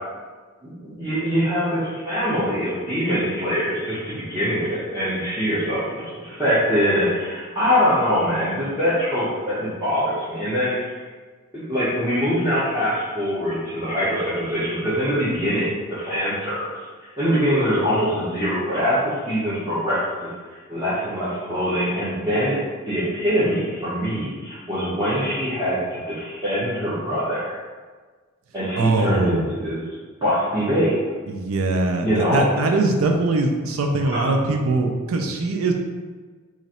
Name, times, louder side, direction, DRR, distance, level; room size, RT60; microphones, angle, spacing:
voice 1, 0.6-11.0 11.5-16.7 17.0-22.6 22.9-27.6 28.5-29.7 30.2-31.0 32.0-32.5 34.1-34.3, equal, 20° right, -13 dB, 0.9 m, -23 dB
voice 2, 28.8-29.5 31.3-35.7, right 2 dB, 90° right, 3 dB, 0.4 m, -22 dB
3.0 x 2.5 x 4.1 m, 1.4 s
head